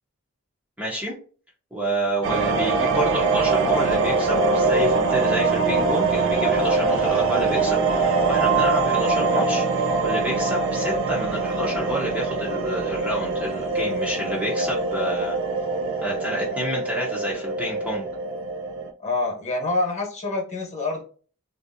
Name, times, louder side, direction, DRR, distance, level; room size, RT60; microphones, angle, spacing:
voice 1, 0.8-1.2 1.7-15.4 16.0-18.1, right 1 dB, 5° right, -4 dB, 0.6 m, -29 dB
sound 1, 2.2-18.9, right 3 dB, 60° right, 0.5 m, -23 dB
voice 2, 19.0-21.0, left 2 dB, 30° left, 0 dB, 1.0 m, -26 dB
3.1 x 2.6 x 2.5 m, 0.40 s
head